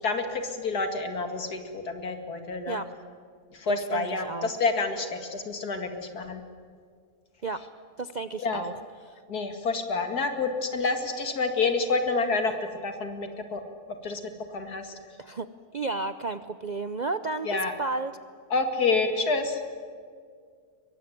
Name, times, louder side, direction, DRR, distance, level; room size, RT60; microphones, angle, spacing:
voice 1, 0.0-2.8 3.5-6.4 8.4-8.6 9.3-12.5 12.8-13.6 13.9-14.2 14.5-15.0 17.5-17.7 18.5-19.6, left 4 dB, 80° left, 6 dB, 2.7 m, -28 dB
voice 2, 3.7-4.5 7.4-7.6 8.0-8.7 9.1-9.2 15.2-15.5 15.7-18.1, right 3 dB, 50° right, 11 dB, 0.5 m, -32 dB
23.5 x 22.0 x 9.3 m, 2.1 s
omnidirectional pair, 1.6 m